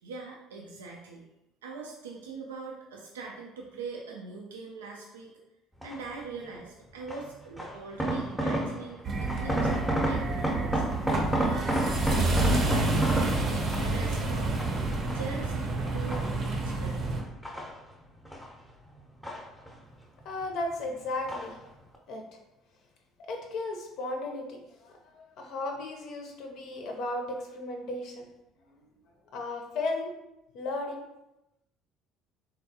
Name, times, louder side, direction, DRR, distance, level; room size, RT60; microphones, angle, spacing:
voice 1, 0.0-1.3 1.6-5.3 5.8-9.7 10.0-10.8 11.4-13.5 13.8-14.6 15.1-15.6 15.9-17.1, right 4 dB, 75° right, -1 dB, 0.3 m, -42 dB
sound 1, 5.8-6.2 7.1-9.0 9.3-14.1 14.6-15.4 15.9-16.7 17.2-18.5 18.8-20.0 20.3-20.9 21.3-21.7 21.9-22.0, right 1 dB, ahead, 0.6 m, -31 dB
sound 2, 9.0-17.2, right 2 dB, 45° right, 0.6 m, -29 dB
voice 2, 20.2-21.6 22.1-22.2 23.3-28.3 28.8-28.9 29.3-30.1 30.5-31.0, left 2 dB, 55° left, 2 dB, 0.6 m, -35 dB
3.5 x 2.2 x 2.7 m, 0.91 s
figure-of-eight pair, 55°, 0 cm